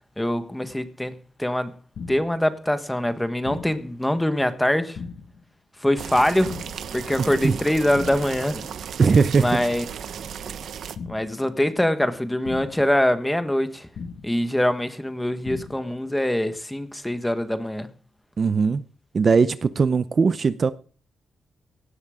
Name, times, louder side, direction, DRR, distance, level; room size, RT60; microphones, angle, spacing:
voice 1, 0.2-1.1 1.4-1.7 2.1-5.0 5.8-6.6 6.9-8.7 9.4-9.8 11.1-13.9 14.2-17.9, left 1 dB, 5° left, 1.4 m, -23 dB
sound 1, 1.9-2.4 3.4-3.9 4.9-5.4 6.4-6.9 7.9-8.4 9.4-9.9 10.9-11.4 12.4-12.9 13.9-14.4 15.4-15.9, left 5 dB, 70° left, 1.9 m, -37 dB
sound 2, 6.0-11.0, right 8 dB, 75° right, 1.1 m, -35 dB
voice 2, 7.2-7.6 9.0-9.5 18.4-18.8 19.1-20.7, right 5 dB, 40° right, 0.7 m, -19 dB
17.5 x 13.0 x 3.7 m
wide cardioid pair, 135°, 0 cm